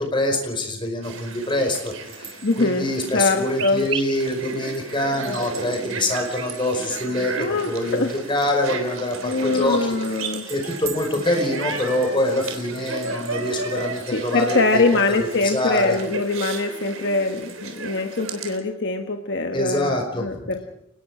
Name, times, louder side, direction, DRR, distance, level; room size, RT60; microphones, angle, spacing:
voice 1, 0.0-10.0 10.5-14.8 15.2-16.0 19.5-20.5, left 1 dB, 25° left, 3 dB, 5.1 m, -25 dB
sound 1, 1.0-18.6, right 3 dB, 80° right, 3.7 m, -34 dB
voice 2, 2.4-3.8 7.4-8.1 9.2-10.4 14.1-20.6, left 3 dB, 55° left, 4 dB, 1.4 m, -23 dB
29.5 x 20.0 x 5.0 m, 0.84 s
head